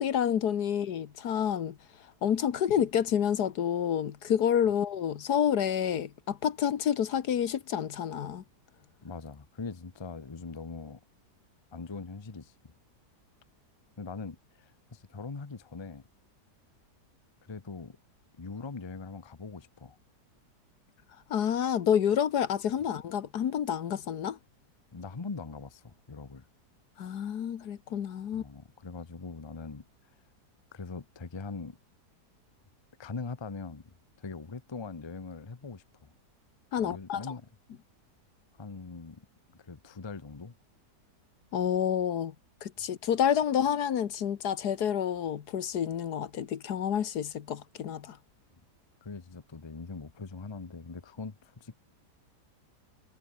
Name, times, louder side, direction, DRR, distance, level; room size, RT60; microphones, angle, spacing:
voice 1, 0.0-1.8 2.2-8.4 21.3-24.4 27.0-28.4 36.7-37.3 41.5-42.3 42.6-48.2, left 9 dB, 75° left, 1.7 m, -29 dB
voice 2, 9.0-11.0 11.7-12.5 14.0-16.1 17.5-18.0 18.4-20.0 24.9-26.4 28.3-29.9 30.7-31.8 33.0-36.1 36.8-37.5 38.6-39.3 39.6-40.5 49.0-51.8, left 4 dB, 20° left, 0.8 m, -42 dB
omnidirectional pair, 1.8 m